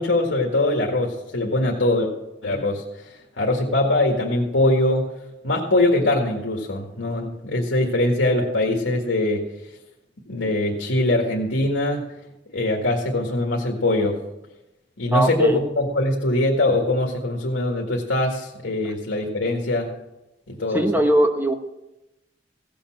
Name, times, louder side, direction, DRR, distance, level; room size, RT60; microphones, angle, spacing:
voice 1, 0.0-2.1 2.4-2.8 3.4-5.1 5.4-9.5 10.3-12.1 12.5-14.2 15.0-19.9 20.5-20.9, left 1 dB, 75° left, 0 dB, 1.8 m, -22 dB
voice 2, 15.1-15.6 20.7-21.5, right 1 dB, 10° right, 5 dB, 1.0 m, -19 dB
16.0 x 7.2 x 6.0 m, 0.95 s
head